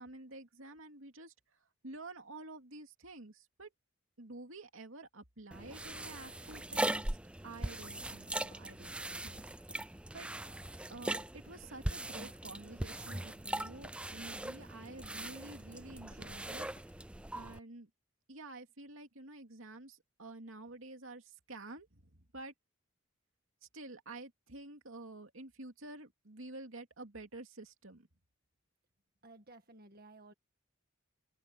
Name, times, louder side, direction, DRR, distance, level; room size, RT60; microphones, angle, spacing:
voice 1, 0.0-1.3 1.8-3.7 4.2-7.2 7.4-9.0 9.2-9.5 10.1-10.3 10.9-16.7 17.3-17.9 18.3-22.5 23.7-28.1, right 2 dB, 75° right, 2.6 m, -49 dB
sound 1, 5.5-17.6, right 1 dB, 5° right, 0.4 m, -40 dB
Walk footsteps, 8.5-8.7 9.1-9.3 9.7-9.9 10.2-10.5 10.9-11.1 11.6-11.8 12.3-12.5 12.9-13.1 13.6-13.7 14.2-14.4 14.9-15.1 15.5-15.7 16.1-16.3 16.8-17.0 17.4-17.5, left 2 dB, 35° left, 4.7 m, -63 dB
voice 2, 29.2-30.3, right 2 dB, 45° right, 1.8 m, -56 dB
open air
head